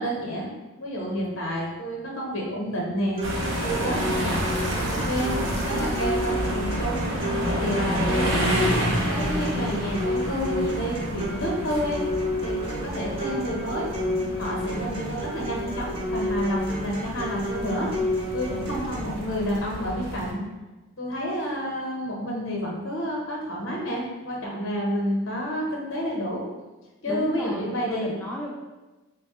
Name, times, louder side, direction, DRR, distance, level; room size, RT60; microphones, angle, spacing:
voice 1, 0.0-3.2 3.6-4.4 4.9-7.0 7.5-12.0 12.4-13.9 14.4-17.9 18.3-20.4 21.0-26.4 27.0-28.1, equal, 70° left, -2 dB, 0.9 m, -29 dB
sound 1, 3.1-19.1, left 1 dB, 25° right, 0.7 m, -31 dB
sound 2, 3.2-20.3, equal, 65° right, 0.7 m, -29 dB
voice 2, 27.1-28.5, equal, 5° left, -4 dB, 0.3 m, -33 dB
3.1 x 2.2 x 4.1 m, 1.1 s
head